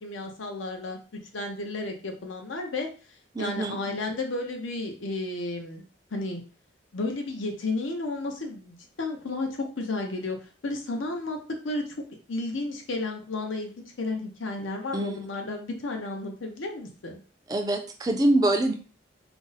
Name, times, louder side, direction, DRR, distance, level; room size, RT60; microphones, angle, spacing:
voice 1, 0.0-2.9 3.4-5.8 6.1-6.4 6.9-11.4 11.6-17.2, left 2 dB, 80° left, 3 dB, 0.7 m, -32 dB
voice 2, 3.3-3.8 14.9-15.3 17.5-18.7, right 1 dB, 20° right, 4 dB, 0.3 m, -24 dB
2.5 x 2.0 x 3.9 m, 0.37 s
head